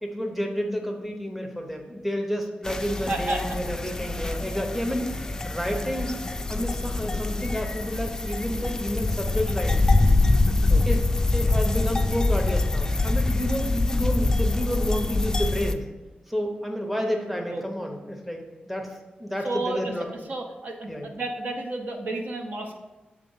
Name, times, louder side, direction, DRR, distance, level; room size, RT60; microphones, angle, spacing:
voice 1, 0.0-6.1 6.5-9.8 10.9-11.1 11.3-15.8 16.3-18.4 18.7-20.1 20.9-21.1, equal, 5° right, 2 dB, 0.7 m, -30 dB
sound 1, 2.6-15.7, left 2 dB, 20° left, 0.3 m, -24 dB
voice 2, 3.1-3.6 10.7-10.9 17.5-17.6 19.4-19.9 20.3-22.8, right 2 dB, 70° right, 3 dB, 0.9 m, -31 dB
7.5 x 3.8 x 5.4 m, 1.1 s
wide cardioid pair, 170°, 3 cm